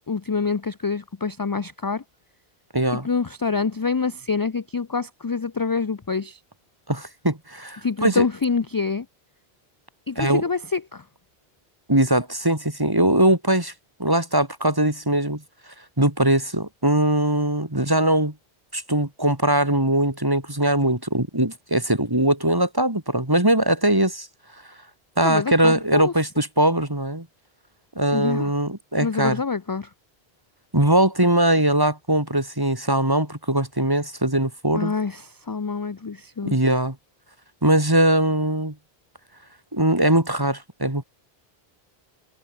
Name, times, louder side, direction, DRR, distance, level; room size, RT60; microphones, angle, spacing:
voice 1, 0.1-2.0 3.0-6.4 7.8-9.1 10.1-11.0 25.2-26.1 28.1-28.5 29.0-29.9 34.7-35.2 35.5-36.6, left 5 dB, 30° left, 0.4 m, -26 dB
voice 2, 2.7-3.1 6.9-8.3 10.2-10.4 11.9-13.7 14.0-15.4 16.0-18.3 18.7-24.3 25.2-27.3 28.0-29.4 30.7-34.9 36.4-37.0 37.6-38.7 39.7-41.0, right 1 dB, 20° right, 2.9 m, -21 dB
omnidirectional pair, 1.0 m